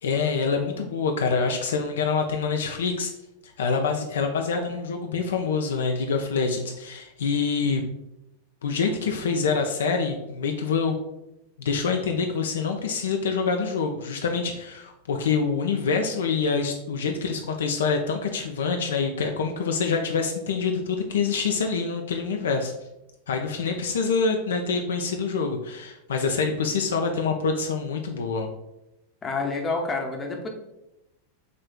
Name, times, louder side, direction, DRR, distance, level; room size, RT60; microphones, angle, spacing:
voice 1, 0.0-3.1 3.4-7.8 8.6-11.0 11.6-22.7 23.3-28.5, left 5 dB, 65° left, 4 dB, 0.3 m, -26 dB
voice 2, 29.2-30.5, left 3 dB, 20° left, 2 dB, 0.7 m, -28 dB
5.0 x 3.1 x 2.2 m, 0.90 s
figure-of-eight pair, 90°, 0 cm